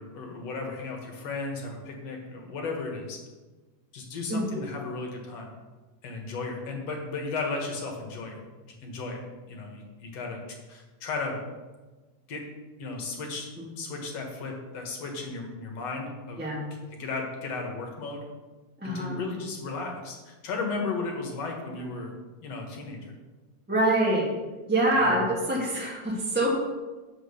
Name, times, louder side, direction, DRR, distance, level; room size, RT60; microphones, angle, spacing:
voice 1, 0.0-3.2 3.9-5.5 6.0-8.4 8.6-9.2 9.5-10.4 10.7-11.4 12.3-12.4 12.8-13.5 13.8-16.4 16.9-18.3 18.8-22.1 22.4-23.1 24.9-25.2, left 3 dB, 60° left, 1 dB, 2.4 m, -35 dB
voice 2, 4.3-4.7 13.6-13.7 16.4-16.6 18.8-19.2 23.7-24.3 24.7-26.5, right 1 dB, 5° right, -5 dB, 1.1 m, -25 dB
7.7 x 6.2 x 6.5 m, 1.3 s
omnidirectional pair, 3.4 m